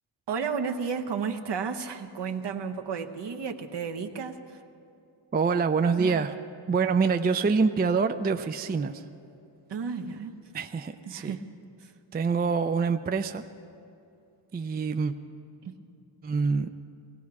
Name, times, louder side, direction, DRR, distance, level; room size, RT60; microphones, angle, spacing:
voice 1, 0.3-4.6 6.0-6.2 9.7-10.3 11.1-11.4 11.8-11.9 15.6-15.8, right 6 dB, 65° right, 5 dB, 1.0 m, -33 dB
voice 2, 5.3-6.3 6.7-9.0 10.5-11.4 12.1-13.4 14.5-15.1 16.2-16.7, right 5 dB, 20° right, 9 dB, 0.4 m, -25 dB
18.5 x 16.5 x 4.8 m, 2.6 s
wide cardioid pair, 120°, 46 cm